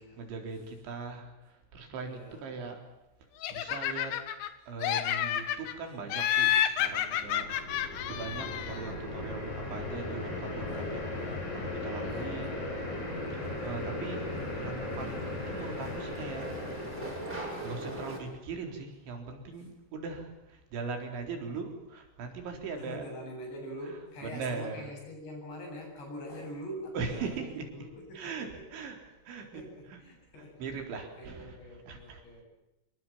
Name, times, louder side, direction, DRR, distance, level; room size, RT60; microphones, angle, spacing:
voice 1, 0.2-2.8 3.5-4.2 4.7-12.6 13.3-14.3 14.6-16.6 17.6-23.1 23.8-24.9 26.9-27.7 28.1-29.0 29.2-30.0 30.6-31.6 31.9-32.2, right 4 dB, 85° right, 3 dB, 6.5 m, -40 dB
voice 2, 2.0-2.4 12.0-13.1 19.6-19.7 22.7-28.6 29.3-30.6 30.9-32.4, equal, 70° left, 2 dB, 10.0 m, -44 dB
Laughter, 3.4-4.5 4.8-5.7 6.1-8.9, left 10 dB, 85° left, 3.8 m, -30 dB
sound 1, 6.9-18.2, left 2 dB, 40° left, 7.1 m, -37 dB
sound 2, 12.7-18.2, right 1 dB, 20° right, 7.2 m, -43 dB
26.5 x 23.5 x 7.6 m, 0.93 s
omnidirectional pair, 5.2 m